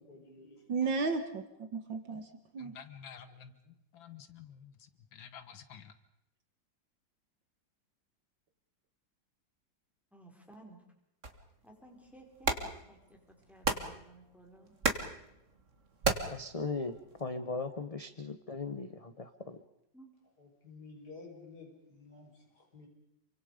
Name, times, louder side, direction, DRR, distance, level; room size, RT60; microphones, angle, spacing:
voice 1, 0.0-0.5 20.4-22.9, left 3 dB, 55° left, 1 dB, 5.3 m, -52 dB
voice 2, 0.7-2.8, right 4 dB, 70° right, 7 dB, 2.3 m, -34 dB
voice 3, 2.6-5.9, left 7 dB, 80° left, 11 dB, 2.0 m, -51 dB
voice 4, 10.1-10.8 11.6-14.8 19.9-20.1, right 2 dB, ahead, 0 dB, 5.1 m, -56 dB
sound 1, 11.2-17.3, right 4 dB, 40° right, 2.2 m, -37 dB
voice 5, 16.3-19.6, left 3 dB, 30° left, 9 dB, 0.7 m, -38 dB
28.0 x 24.5 x 5.1 m, 0.84 s
omnidirectional pair, 2.1 m